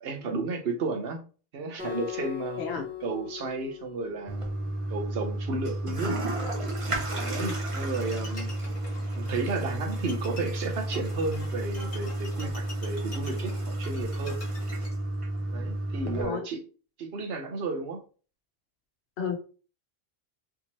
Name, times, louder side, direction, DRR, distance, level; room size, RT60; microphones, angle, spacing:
voice 1, 0.0-1.3 1.5-2.7 3.0-4.5 4.9-6.3 7.1-8.5 9.1-14.4 15.5-16.6 17.0-18.0, right 3 dB, 75° right, 4 dB, 1.0 m, -33 dB
Acoustic guitar, 1.8-5.0, left 11 dB, 10° right, 1.1 m, -39 dB
Toilet flush, 4.3-16.2, right 1 dB, 35° right, 0.8 m, -32 dB
Bowed string instrument, 7.2-14.9, left 2 dB, 50° left, 1.7 m, -46 dB
voice 2, 16.0-16.5 19.2-19.4, left 6 dB, 80° left, 4 dB, 1.1 m, -32 dB
3.5 x 2.8 x 2.9 m, 0.37 s
omnidirectional pair, 1.1 m